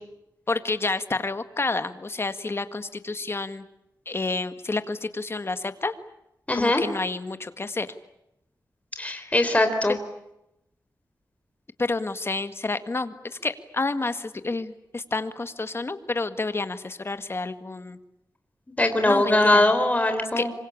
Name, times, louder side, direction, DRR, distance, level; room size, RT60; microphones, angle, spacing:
voice 1, 0.5-3.6 4.1-5.9 6.5-7.9 9.1-9.3 11.8-18.0 19.0-19.7 20.4-20.5, left 3 dB, 35° left, 10 dB, 1.8 m, -29 dB
voice 2, 6.5-6.8 9.0-10.0 18.8-20.5, left 2 dB, 20° left, 7 dB, 3.9 m, -21 dB
27.0 x 25.0 x 8.7 m, 0.84 s
wide cardioid pair, 95°, 7 cm